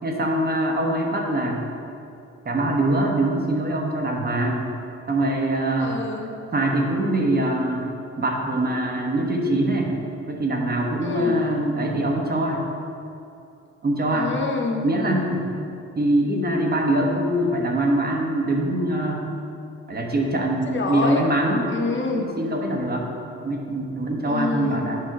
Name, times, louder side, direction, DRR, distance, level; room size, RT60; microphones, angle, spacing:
voice 1, 0.0-1.6 2.4-4.7 5.1-6.0 6.5-7.9 8.2-9.9 10.3-12.6 13.8-14.3 14.8-15.4 16.0-19.2 19.9-21.7 22.2-23.1 23.3-25.0, right 1 dB, 30° right, 1 dB, 1.2 m, -23 dB
voice 2, 5.8-6.3 11.0-11.4 14.1-14.8 20.7-21.2 21.7-22.3 24.2-24.9, left 3 dB, 40° left, 2 dB, 0.9 m, -27 dB
7.7 x 5.4 x 4.6 m, 2.7 s
cardioid pair, 90°, 30 cm